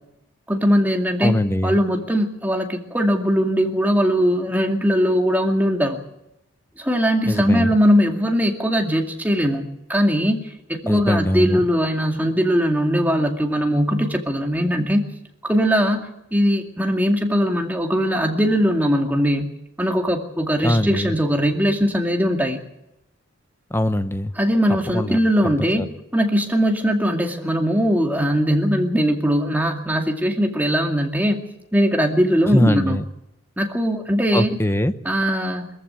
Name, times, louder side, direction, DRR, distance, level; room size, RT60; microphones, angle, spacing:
voice 1, 0.5-6.0 6.8-9.6 9.9-10.4 10.7-15.0 15.4-19.5 19.8-22.6 24.4-25.9 26.1-31.4 31.7-33.0 33.6-34.5 35.0-35.7, equal, 10° right, 2 dB, 2.3 m, -20 dB
voice 2, 1.2-1.8 7.2-7.8 10.8-11.6 20.6-21.1 23.7-24.3 24.9-25.2 25.4-25.9 32.5-33.0 34.3-34.9, left 1 dB, 10° left, 11 dB, 0.8 m, -21 dB
22.0 x 14.5 x 8.3 m, 0.87 s
head